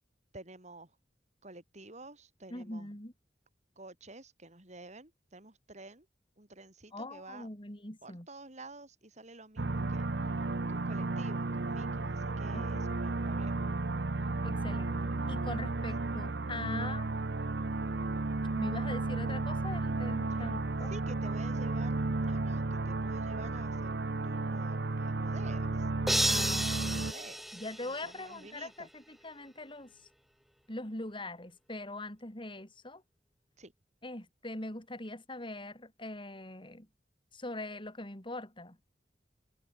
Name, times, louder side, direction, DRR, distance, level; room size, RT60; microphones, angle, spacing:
voice 1, 0.3-0.9 1.4-2.9 3.8-6.1 6.4-7.5 8.0-10.3 10.7-13.6 15.9-16.0 20.4-20.5 20.9-25.9 26.2-28.9 33.6-33.7, right 2 dB, 40° right, 5.0 m, -51 dB
voice 2, 2.5-3.1 6.9-8.3 12.5-13.0 14.2-17.1 18.6-20.9 26.3-27.1 27.5-29.9 30.7-33.0 34.0-36.9 37.3-38.8, left 2 dB, 30° left, 5.1 m, -42 dB
sound 1, 9.6-27.1, right 2 dB, 70° right, 0.9 m, -33 dB
sound 2, 26.1-28.4, equal, ahead, 1.5 m, -32 dB
head